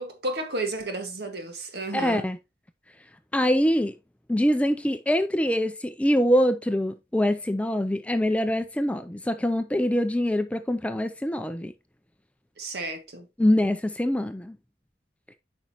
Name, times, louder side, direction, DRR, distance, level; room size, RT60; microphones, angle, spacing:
voice 1, 0.0-2.3 12.6-13.3, right 2 dB, 60° right, 1.7 m, -32 dB
voice 2, 1.9-2.4 3.3-3.9 4.3-11.7 13.4-14.6, equal, 5° left, 0.4 m, -24 dB
9.0 x 5.4 x 2.9 m
head